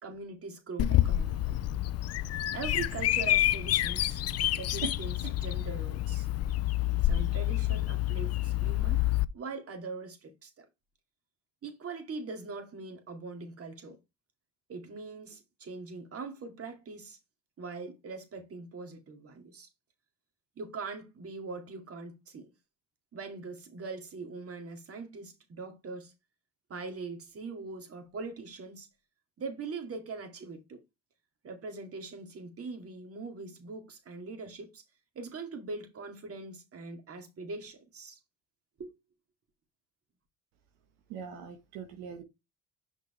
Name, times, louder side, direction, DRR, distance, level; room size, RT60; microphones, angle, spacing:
voice 1, 0.0-1.6 2.5-4.2 4.5-6.3 7.0-9.0 9.3-10.7 11.6-14.0 14.7-17.2 17.6-19.7 20.6-22.5 23.1-26.1 26.7-28.9 29.4-30.8 31.4-34.8 35.2-38.2 38.8-38.9, right 4 dB, 45° right, 2.3 m, -42 dB
Bird vocalization bird call bird song, 0.8-9.2, left 14 dB, 45° left, 0.5 m, -28 dB
voice 2, 41.1-42.2, right 5 dB, 90° right, 1.2 m, -39 dB
6.4 x 5.0 x 3.2 m
cardioid pair, 90°, 34 cm